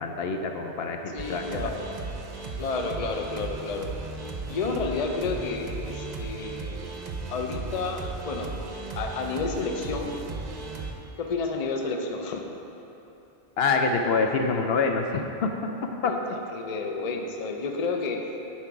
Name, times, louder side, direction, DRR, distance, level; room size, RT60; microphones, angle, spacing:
voice 1, 0.0-1.7 13.6-15.7 16.0-16.1, left 4 dB, 70° left, 4 dB, 0.8 m, -26 dB
voice 2, 1.1-2.0 2.6-4.0 4.5-6.8 7.3-8.6 8.9-10.1 11.2-12.4 16.0-18.3, left 4 dB, 45° left, 3 dB, 0.6 m, -31 dB
sound 1, 1.2-10.9, right 3 dB, 45° right, 0.8 m, -36 dB
10.5 x 4.5 x 4.7 m, 2.9 s
omnidirectional pair, 1.1 m